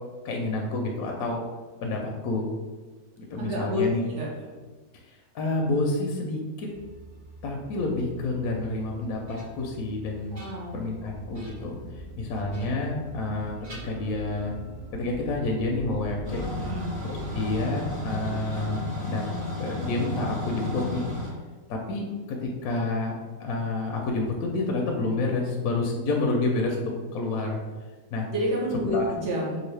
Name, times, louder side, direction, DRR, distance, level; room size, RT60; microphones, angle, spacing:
voice 1, 0.2-1.5 1.8-2.5 3.2-4.1 5.3-6.7 7.4-10.4 10.7-11.8 12.2-13.6 13.8-14.5 14.9-16.4 17.0-19.2 19.6-21.1 21.7-27.6 28.1-28.3 28.9-29.0, left 2 dB, 75° left, 0 dB, 1.0 m, -29 dB
voice 2, 3.4-4.3 10.3-10.8 16.6-16.9 28.3-29.6, left 1 dB, 55° right, -4 dB, 1.1 m, -29 dB
sound 1, 6.7-18.4, right 1 dB, 25° right, 1.0 m, -44 dB
sound 2, 9.3-9.8 10.2-10.9 11.3-11.8 12.5-13.4 13.6-14.6, right 1 dB, 70° right, 1.9 m, -51 dB
sound 3, 16.2-21.3, left 2 dB, 85° right, 2.0 m, -32 dB
3.7 x 2.6 x 3.2 m, 1.3 s
omnidirectional pair, 1.7 m